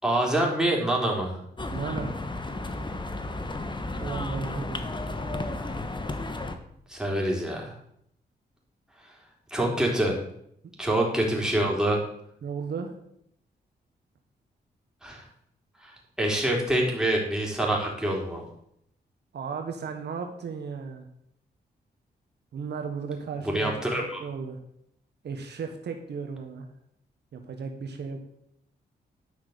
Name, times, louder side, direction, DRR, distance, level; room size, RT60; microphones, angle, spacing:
voice 1, 0.0-1.4 6.9-7.7 9.5-10.2 10.8-12.0 15.0-15.2 15.8-18.4 23.4-24.2, right 1 dB, 5° right, -2 dB, 4.2 m, -26 dB
sound 1, 1.6-6.6, left 2 dB, 25° left, 1.3 m, -33 dB
voice 2, 1.7-2.2 4.0-5.0 12.4-13.0 19.3-21.1 22.5-23.7 24.0-24.6 25.2-26.7 27.3-28.2, right 5 dB, 70° right, 5 dB, 1.3 m, -35 dB
10.5 x 6.0 x 6.7 m, 0.72 s
cardioid pair, 65°, 18 cm